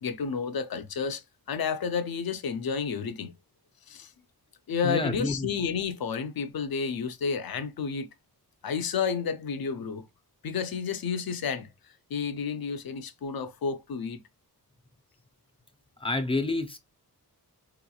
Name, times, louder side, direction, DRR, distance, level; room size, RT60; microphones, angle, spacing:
voice 1, 0.0-3.3 3.9-4.1 4.7-8.1 8.6-10.1 10.4-14.2, left 6 dB, 65° left, 0.6 m, -31 dB
voice 2, 4.8-5.5 16.0-16.8, left 2 dB, 15° left, 0.5 m, -28 dB
3.5 x 2.9 x 2.3 m
wide cardioid pair, 95°, 38 cm